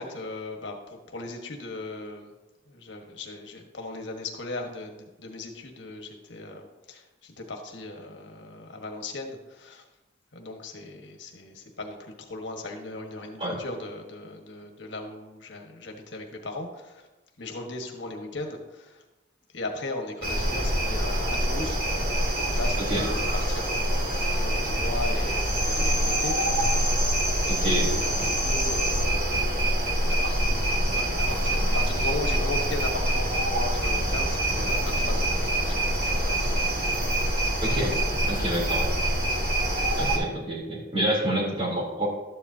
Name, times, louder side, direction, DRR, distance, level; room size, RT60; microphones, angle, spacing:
voice 1, 0.0-2.3 2.7-9.8 10.3-17.1 17.4-19.0 19.5-21.8 22.4-26.9 27.6-29.6 30.0-30.4 30.9-36.7, left 2 dB, 75° left, 2 dB, 1.5 m, -37 dB
sound 1, 20.2-40.2, right 1 dB, 50° right, 2.1 m, -25 dB
voice 2, 27.5-27.9 28.1-28.3 37.6-38.0 38.3-38.9 39.9-42.1, right 1 dB, 30° right, -4 dB, 3.5 m, -28 dB
13.0 x 10.5 x 2.8 m, 1.1 s
head